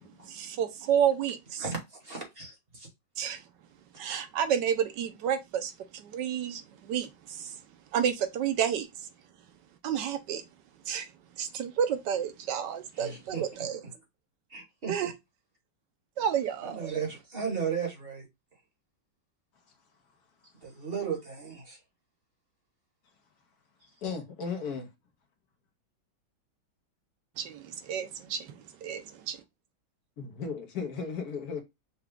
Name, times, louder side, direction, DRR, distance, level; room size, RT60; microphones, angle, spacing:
voice 1, 0.2-1.6 3.2-3.4 4.0-7.6 7.9-8.9 9.8-10.4 10.9-11.1 11.4-13.8 14.9-15.1 16.2-16.9 27.4-29.4, right 8 dB, 80° right, 1.3 m, -30 dB
voice 2, 1.6-2.9 12.9-13.7 14.5-15.1 16.6-18.3 20.6-21.8, right 6 dB, 35° right, 1.4 m, -35 dB
voice 3, 24.0-24.9 30.2-31.6, left 5 dB, 65° left, 1.3 m, -35 dB
5.8 x 2.3 x 3.6 m
omnidirectional pair, 1.9 m